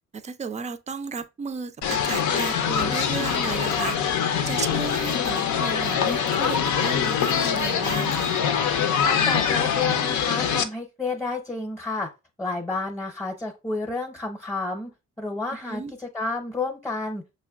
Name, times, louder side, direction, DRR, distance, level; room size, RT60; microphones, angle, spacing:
voice 1, 0.1-4.0 4.5-8.4 15.7-15.9, right 5 dB, 25° right, 0.3 m, -33 dB
sound 1, 1.8-10.6, left 7 dB, 75° left, 0.6 m, -24 dB
voice 2, 9.0-12.1 12.4-14.9 15.2-17.2, left 3 dB, 5° left, 0.7 m, -30 dB
6.1 x 2.2 x 2.3 m
cardioid pair, 90°, 30 cm